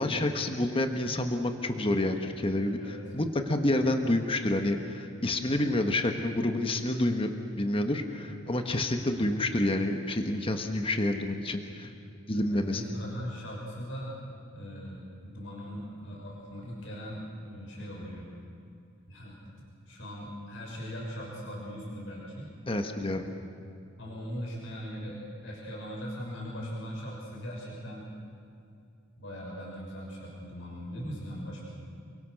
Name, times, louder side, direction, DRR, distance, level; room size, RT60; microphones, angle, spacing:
voice 1, 0.0-7.3 7.6-11.9 12.3-12.8 22.7-23.2, left 1 dB, 30° left, 6 dB, 1.5 m, -28 dB
voice 2, 12.3-14.2 14.5-18.3 19.1-19.4 19.9-22.5 24.0-28.0 29.2-31.6, equal, 75° left, -3 dB, 6.2 m, -40 dB
29.0 x 23.0 x 6.6 m, 2.5 s
head